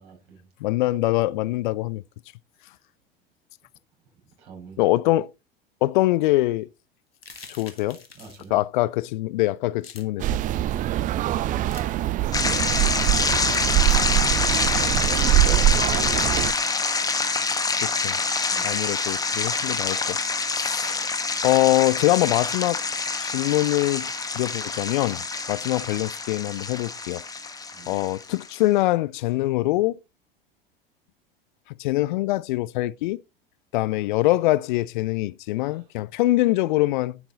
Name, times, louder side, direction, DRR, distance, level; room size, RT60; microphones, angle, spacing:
voice 1, 0.0-0.7 2.6-2.7 4.2-4.9 8.1-8.6 13.3-14.6 15.3-16.9 18.5-18.8 25.6-25.8 27.7-28.0 35.5-36.0, right 3 dB, 55° right, 5.9 m, -45 dB
voice 2, 0.6-2.0 4.8-5.3 5.8-6.7 7.6-8.0 8.5-10.3 17.8-18.2 18.6-20.2 20.5-21.1 21.4-22.8 23.2-25.2 25.5-27.2 27.9-30.0 31.8-33.2 33.7-37.2, left 18 dB, 55° left, 0.4 m, -23 dB
sound 1, 7.2-8.5 9.8-10.0 11.6-11.9 13.9-14.1, left 4 dB, 85° left, 1.6 m, -44 dB
sound 2, 10.2-16.5, right 14 dB, 30° right, 0.5 m, -23 dB
sound 3, 12.3-28.5, left 4 dB, 10° left, 1.3 m, -26 dB
10.5 x 6.0 x 4.0 m
figure-of-eight pair, 80°, 29 cm